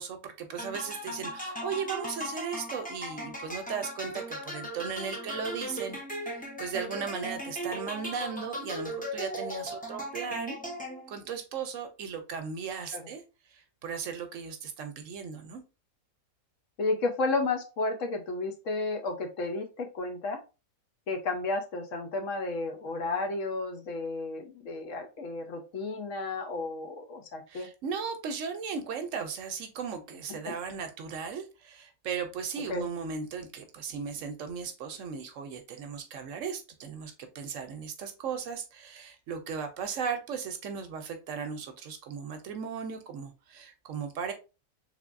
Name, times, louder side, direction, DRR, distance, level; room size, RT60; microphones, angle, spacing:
voice 1, 0.0-6.0 6.2-10.6 11.1-13.2 13.5-15.6 27.5-44.3, right 6 dB, 65° right, 6 dB, 0.9 m, -37 dB
sound 1, 0.6-11.2, equal, 10° left, 0.4 m, -38 dB
voice 2, 16.8-20.4 21.1-27.7 30.3-30.5 32.7-32.9, left 3 dB, 65° left, 4 dB, 1.0 m, -32 dB
3.4 x 3.3 x 2.4 m, 0.30 s
omnidirectional pair, 1.5 m